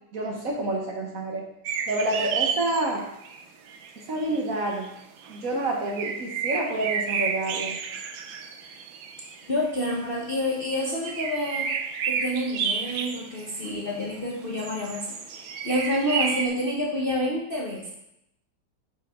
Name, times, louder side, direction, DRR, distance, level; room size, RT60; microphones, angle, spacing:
voice 1, 0.1-1.4 1.9-3.0 4.0-4.9 5.3-7.8, right 2 dB, 50° right, 0 dB, 1.4 m, -28 dB
sound 1, 1.7-3.4 3.7-5.4 5.9-9.7 11.1-14.2 14.6-16.5, right 6 dB, 80° right, 1.5 m, -31 dB
voice 2, 9.5-11.7 12.1-17.9, equal, 35° left, -4 dB, 0.9 m, -28 dB
9.4 x 5.4 x 3.7 m, 0.81 s
omnidirectional pair, 2.1 m